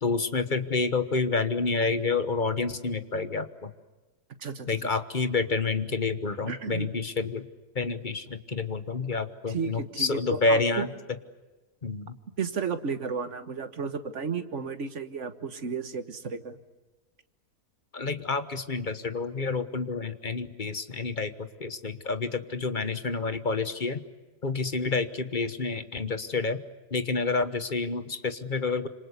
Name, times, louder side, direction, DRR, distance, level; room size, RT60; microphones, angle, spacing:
voice 1, 0.0-3.7 4.7-7.5 7.7-10.9 11.8-12.2 17.9-24.0 24.4-26.6 26.9-28.9, left 4 dB, 35° left, 10 dB, 1.2 m, -29 dB
voice 2, 4.4-4.9 6.5-6.9 9.5-10.8 12.4-16.6, right 5 dB, 50° right, 9 dB, 1.7 m, -33 dB
27.0 x 26.0 x 8.2 m, 1.2 s
omnidirectional pair, 1.7 m